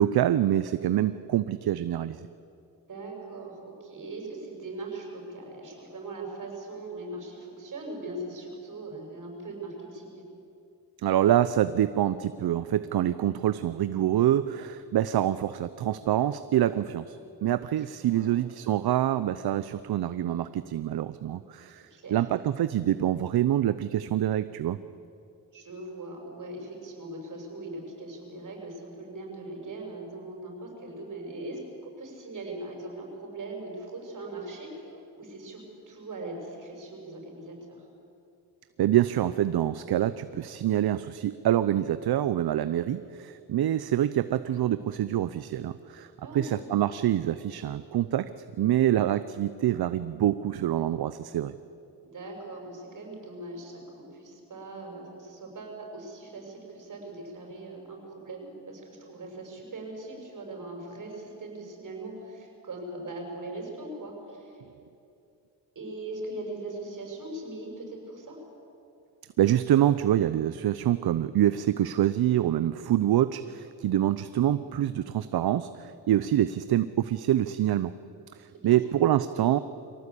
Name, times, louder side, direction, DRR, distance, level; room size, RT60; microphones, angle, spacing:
voice 1, 0.0-2.2 11.0-24.8 38.8-48.3 48.6-51.5 69.4-77.9 78.3-79.6, right 12 dB, 65° right, 13 dB, 0.7 m, -26 dB
voice 2, 2.9-10.2 17.8-18.3 21.9-22.2 25.5-31.6 32.0-37.8 46.2-46.6 52.0-64.6 65.7-68.4 78.5-78.8, right 2 dB, 45° right, 1 dB, 6.6 m, -40 dB
23.5 x 17.5 x 8.4 m, 2.6 s
cardioid pair, 90°, 41 cm